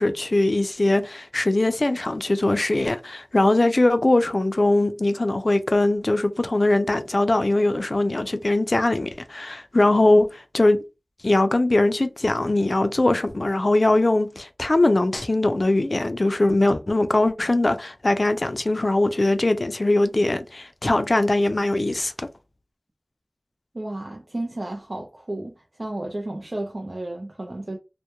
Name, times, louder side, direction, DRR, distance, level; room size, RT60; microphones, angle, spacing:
voice 1, 0.0-10.8 11.2-22.3, left 2 dB, 55° left, 0.3 m, -21 dB
voice 2, 23.7-27.8, right 1 dB, 60° right, 0.5 m, -32 dB
2.2 x 2.1 x 2.8 m
wide cardioid pair, 50°, 0 cm